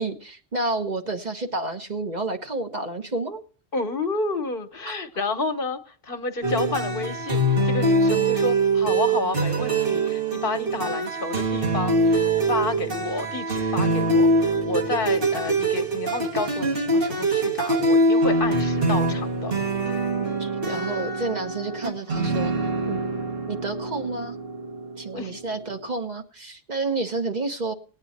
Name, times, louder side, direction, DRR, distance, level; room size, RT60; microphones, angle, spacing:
voice 1, 0.0-3.4 4.8-4.9 20.4-22.5 22.9-23.0 23.5-24.4 25.0-27.7, right 3 dB, 45° right, 5 dB, 1.3 m, -30 dB
voice 2, 3.7-19.5 25.1-25.4, left 3 dB, 60° left, 10 dB, 1.2 m, -30 dB
sound 1, 6.4-25.8, right 2 dB, 60° right, 2.2 m, -24 dB
19.0 x 8.9 x 4.2 m, 0.42 s
omnidirectional pair, 1.0 m